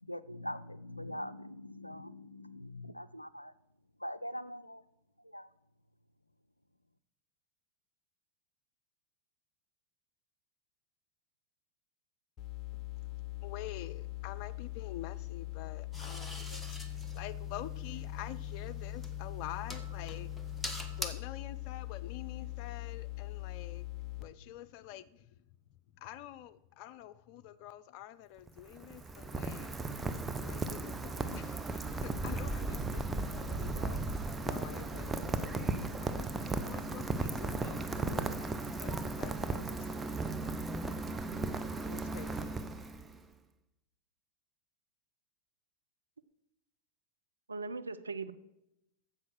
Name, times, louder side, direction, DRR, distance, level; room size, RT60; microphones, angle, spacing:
voice 1, 0.0-3.5 4.0-4.8 5.2-5.5, left 1 dB, 90° left, 0.4 m, -43 dB
sound 1, 12.4-24.2, left 19 dB, 25° left, 1.2 m, -41 dB
voice 2, 12.7-20.3 21.0-25.4 26.0-29.7 30.0-41.2 41.8-42.7, left 12 dB, 45° left, 0.6 m, -48 dB
sound 2, 15.9-21.1, equal, 5° left, 1.2 m, -44 dB
Rain, 28.4-43.2, right 3 dB, 10° right, 0.8 m, -36 dB
voice 3, 47.5-48.3, right 4 dB, 75° right, 0.6 m, -39 dB
9.6 x 7.4 x 6.4 m
figure-of-eight pair, 90°, 0 cm